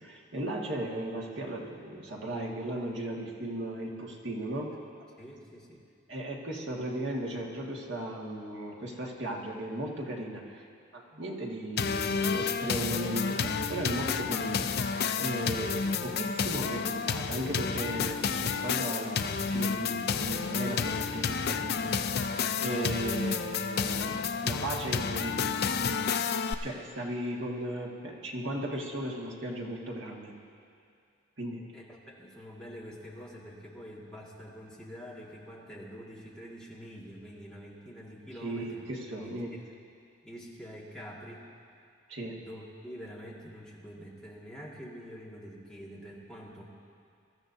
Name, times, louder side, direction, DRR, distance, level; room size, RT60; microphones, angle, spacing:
voice 1, 0.0-4.7 6.1-10.6 10.9-14.7 15.1-21.9 22.6-25.6 26.6-30.3 31.4-31.7 38.4-39.6 42.1-42.4, right 1 dB, 65° right, -2 dB, 1.8 m, -36 dB
voice 2, 5.2-5.8 31.7-38.8 39.2-39.6 40.2-41.5 42.4-46.7, equal, 5° left, -6 dB, 2.0 m, -46 dB
sound 1, 11.8-26.5, left 6 dB, 50° left, 0.5 m, -30 dB
24.0 x 13.5 x 2.7 m, 2.4 s
head